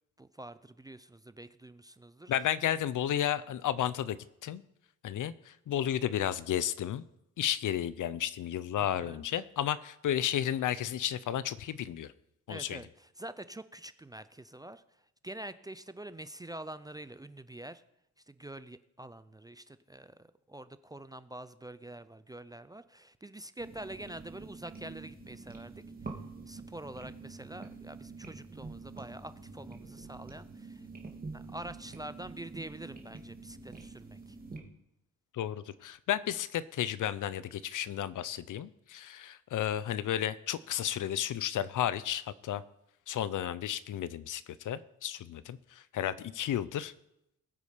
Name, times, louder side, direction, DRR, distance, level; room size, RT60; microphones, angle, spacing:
voice 1, 0.2-2.3 8.9-9.2 12.5-17.8 18.3-30.9 31.3-34.4, right 1 dB, 10° right, 13 dB, 0.4 m, -46 dB
voice 2, 2.3-4.6 5.0-7.0 7.4-12.1 12.5-12.8 35.3-42.6 43.1-46.9, left 11 dB, 70° left, 17 dB, 0.7 m, -33 dB
sound 1, 23.6-34.6, right 3 dB, 25° right, 2.1 m, -46 dB
19.5 x 8.5 x 5.0 m, 0.82 s
wide cardioid pair, 140°, 32 cm